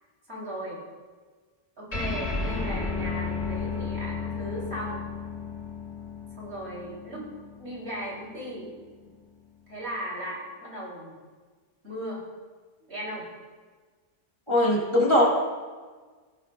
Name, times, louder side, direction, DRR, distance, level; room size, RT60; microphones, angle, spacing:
voice 1, 0.3-0.8 1.8-5.0 6.4-7.3 7.6-8.7 9.7-11.2 11.8-12.2 12.9-13.3, right 1 dB, 85° right, -4 dB, 3.2 m, -37 dB
sound 1, 1.9-8.7, left 4 dB, 85° left, 3.2 m, -33 dB
voice 2, 14.5-15.2, left 1 dB, 25° left, -4 dB, 2.2 m, -20 dB
16.0 x 10.5 x 2.2 m, 1.4 s
omnidirectional pair, 1.1 m